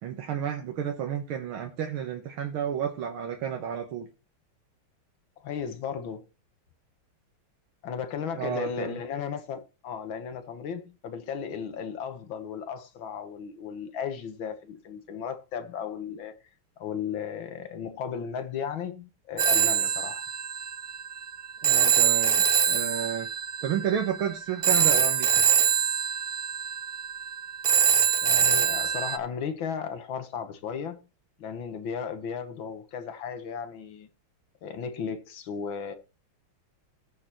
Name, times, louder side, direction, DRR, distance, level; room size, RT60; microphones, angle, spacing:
voice 1, 0.0-4.1 8.3-9.0 21.6-23.3 23.6-25.5, right 9 dB, 80° right, 1.9 m, -31 dB
voice 2, 5.4-6.2 7.8-16.4 16.8-20.2 28.2-31.0 31.4-34.1 34.6-35.9, left 7 dB, 70° left, 1.9 m, -35 dB
Telephone, 19.4-29.2, right 8 dB, 40° right, 0.8 m, -24 dB
18.5 x 6.6 x 3.0 m
omnidirectional pair, 2.3 m